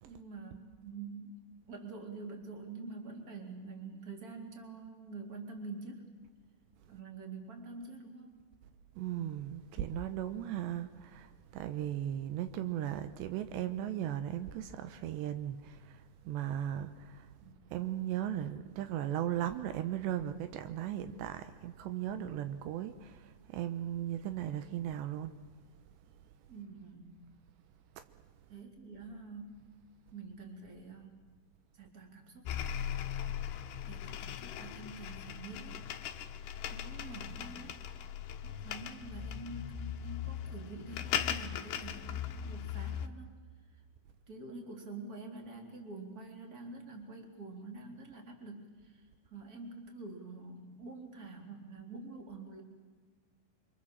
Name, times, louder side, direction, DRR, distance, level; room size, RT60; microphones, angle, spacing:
voice 1, 0.0-1.4 1.7-6.1 6.9-8.4 17.4-17.9 26.5-27.2 28.5-29.7 30.1-31.2 31.7-32.5 33.9-35.9 36.7-37.8 38.4-43.3 44.3-52.6, right 3 dB, 20° right, 3.7 m, -47 dB
voice 2, 9.0-17.3 17.7-25.3 28.0-28.1, right 11 dB, 80° right, 3.1 m, -37 dB
sound 1, 32.4-43.1, left 9 dB, 75° left, 3.3 m, -39 dB
28.5 x 25.0 x 7.5 m
omnidirectional pair, 5.1 m